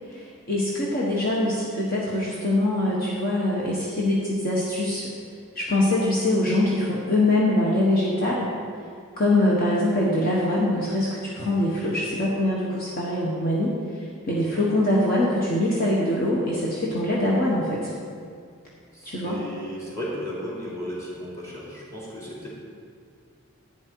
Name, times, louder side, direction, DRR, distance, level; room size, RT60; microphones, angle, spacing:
voice 1, 0.1-5.1 5.5-8.5 9.2-17.9 19.0-19.4, left 1 dB, 45° left, -5 dB, 1.4 m, -23 dB
voice 2, 18.9-22.5, equal, 15° left, -5 dB, 3.0 m, -35 dB
11.5 x 9.0 x 4.7 m, 2.2 s
head